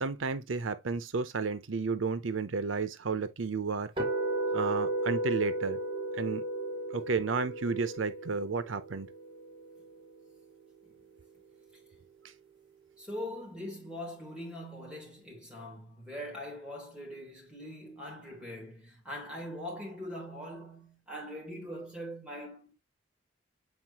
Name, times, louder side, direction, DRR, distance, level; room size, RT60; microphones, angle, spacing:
voice 1, 0.0-3.9 4.5-5.8 6.1-6.4 6.9-9.1, right 4 dB, 90° right, 0.7 m, -32 dB
sound 1, 4.0-10.0, right 2 dB, 25° right, 2.1 m, -34 dB
voice 2, 13.0-22.7, equal, 5° right, 3.3 m, -42 dB
7.9 x 4.7 x 2.9 m
head